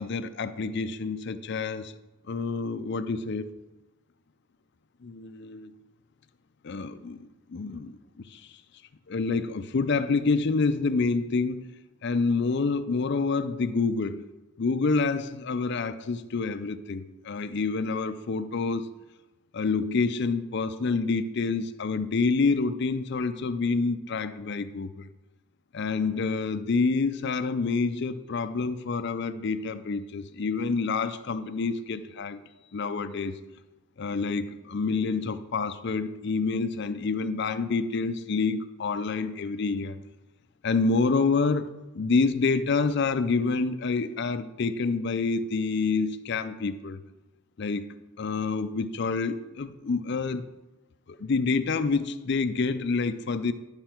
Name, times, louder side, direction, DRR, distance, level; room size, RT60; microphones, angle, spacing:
voice 1, 0.0-1.9 2.3-3.5 5.0-5.7 6.6-8.0 8.3-8.4 9.1-11.7 12.0-14.2 14.6-18.9 19.5-25.0 25.7-32.4 32.7-33.4 34.0-40.0 40.6-41.7 41.9-47.0 47.6-47.8 48.2-50.4 51.1-53.5, left 4 dB, 50° left, 10 dB, 0.5 m, -27 dB
11.0 x 5.6 x 4.4 m, 1.1 s
head